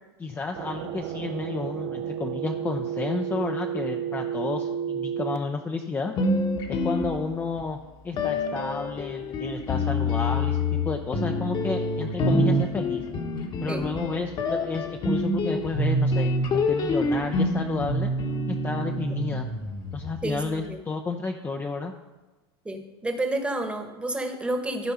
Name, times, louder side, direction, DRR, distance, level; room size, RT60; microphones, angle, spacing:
voice 1, 0.2-6.1 6.7-7.8 8.0-13.0 13.6-18.1 18.5-19.5 19.9-21.9, left 4 dB, 15° left, 4 dB, 0.6 m, -31 dB
sound 1, 0.5-5.4, right 9 dB, 50° right, 0.5 m, -31 dB
sound 2, 6.2-7.6 8.2-20.4, left 1 dB, 35° left, 1.2 m, -27 dB
voice 2, 20.2-20.8 22.6-24.9, right 2 dB, 10° right, 5 dB, 1.2 m, -30 dB
13.5 x 4.6 x 5.5 m, 1.1 s
supercardioid pair, 115°, 14 cm